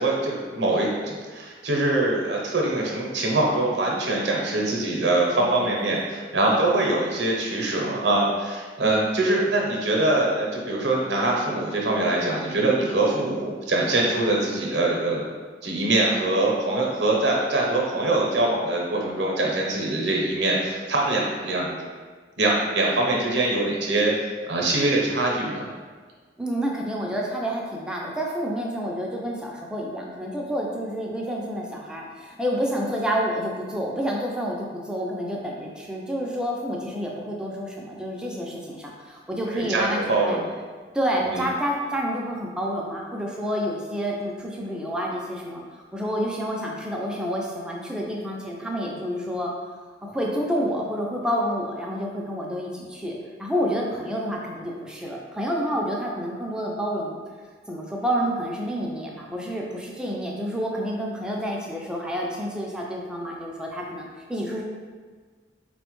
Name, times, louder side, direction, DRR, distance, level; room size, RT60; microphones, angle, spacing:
voice 1, 0.0-15.2 15.6-21.8 22.4-24.1 24.5-25.7 39.5-40.5 41.2-41.5, right 2 dB, 70° right, -2 dB, 0.6 m, -23 dB
voice 2, 26.4-40.4 40.9-45.6 45.9-49.5 50.0-57.2 57.7-64.6, equal, 5° right, -2 dB, 0.4 m, -29 dB
4.2 x 2.1 x 3.0 m, 1.5 s
head